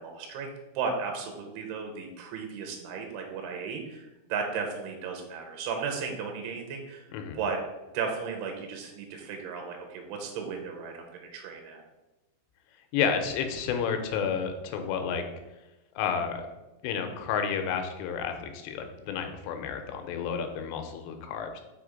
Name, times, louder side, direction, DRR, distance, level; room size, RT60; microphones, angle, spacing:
voice 1, 0.0-7.1 7.3-7.6 7.9-11.0 11.3-11.8, right 5 dB, 75° right, 3 dB, 2.6 m, -35 dB
voice 2, 12.9-15.2 16.0-16.5 16.8-21.6, left 7 dB, 85° left, 6 dB, 2.9 m, -31 dB
6.2 x 3.4 x 5.0 m, 1.0 s
omnidirectional pair, 4.8 m